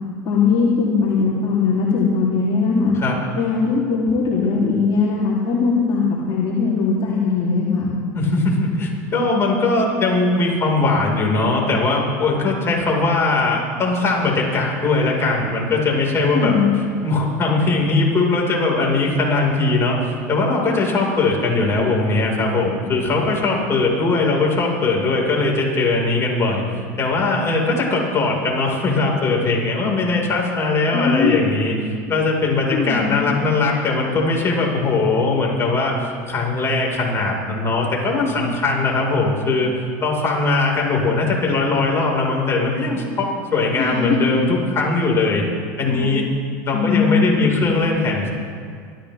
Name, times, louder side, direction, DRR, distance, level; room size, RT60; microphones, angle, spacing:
voice 1, 0.2-2.9 3.3-7.9 16.3-16.7 30.9-31.4 32.7-33.3 43.8-44.2 45.8-46.2 46.7-47.7, left 5 dB, 50° left, -6 dB, 3.2 m, -20 dB
voice 2, 8.1-16.5 17.0-39.7 40.0-45.4 45.8-46.3 46.6-48.3, left 3 dB, 30° left, -2 dB, 5.1 m, -20 dB
25.5 x 14.0 x 3.6 m, 2.1 s
supercardioid pair, 105°, 9 cm